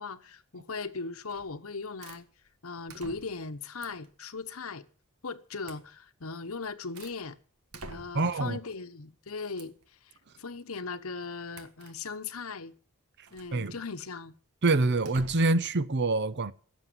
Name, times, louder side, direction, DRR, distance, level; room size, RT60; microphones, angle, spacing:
voice 1, 0.0-2.3 2.6-4.8 5.2-7.4 7.9-12.7 13.3-14.3, left 4 dB, 70° left, 1.1 m, -38 dB
sound 1, 1.3-1.6 2.0-2.2 2.9-3.5 3.8-4.1 5.6-5.9 6.4-7.2 7.7-8.4 9.6-9.8 11.5-12.0 13.3-13.6 15.0-15.7, right 3 dB, 85° right, 1.7 m, -48 dB
voice 2, 8.1-8.6 13.5-13.7 14.6-16.5, right 2 dB, 55° right, 0.8 m, -25 dB
15.5 x 7.3 x 9.4 m
head